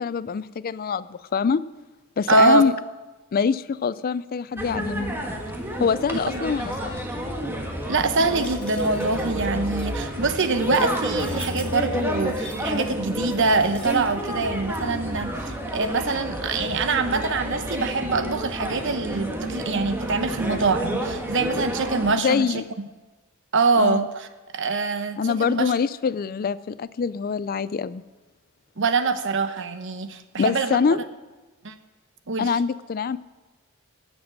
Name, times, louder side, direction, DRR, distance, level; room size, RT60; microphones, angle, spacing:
voice 1, 0.0-1.6 2.2-2.7 3.3-5.1 5.8-7.1 22.2-22.7 23.8-24.1 25.2-28.0 30.4-31.0 32.4-33.2, left 6 dB, 45° left, 17 dB, 0.4 m, -24 dB
voice 2, 2.3-2.6 6.3-6.4 7.9-22.5 23.5-24.3 24.5-25.7 28.8-30.8 31.6-31.7 32.3-32.5, right 3 dB, 60° right, 9 dB, 1.0 m, -24 dB
sound 1, 4.6-22.1, equal, 10° right, 1.6 m, -30 dB
sound 2, 8.2-14.5, left 2 dB, 5° left, 1.5 m, -45 dB
16.0 x 7.4 x 6.1 m, 1.2 s
head